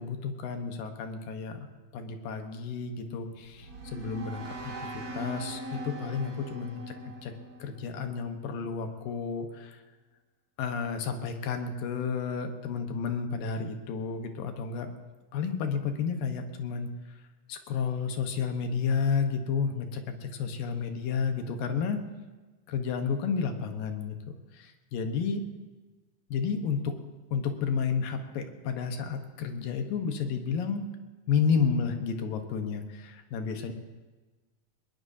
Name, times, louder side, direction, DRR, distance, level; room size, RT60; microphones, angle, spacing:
voice 1, 0.0-1.7 1.9-6.8 7.2-7.3 7.6-9.8 10.6-14.9 15.3-16.9 17.5-22.0 22.7-24.2 24.5-25.4 26.3-26.9 27.3-30.9 31.3-33.7, left 6 dB, 90° left, 6 dB, 2.9 m, -31 dB
sound 1, 3.2-8.4, right 1 dB, 50° right, 2.6 m, -41 dB
21.0 x 20.0 x 2.7 m, 1.3 s
omnidirectional pair, 3.9 m